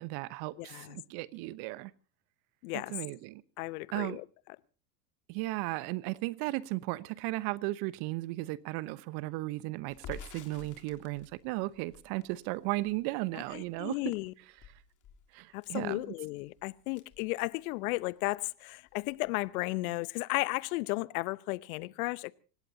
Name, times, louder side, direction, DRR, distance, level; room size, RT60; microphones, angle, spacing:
voice 1, 0.0-1.9 2.7-3.4 3.9-4.2 5.3-14.1 15.3-16.1, right 20 dB, 50° right, 1.1 m, -35 dB
voice 2, 0.6-1.0 2.6-2.9 3.6-4.2 13.5-14.3 15.5-22.3, left 22 dB, 60° left, 0.9 m, -34 dB
Crackle, 9.9-18.0 18.3-18.4 18.7-19.5, left 7 dB, 40° left, 3.4 m, -52 dB
25.5 x 19.0 x 2.8 m
hypercardioid pair, 90°, 49 cm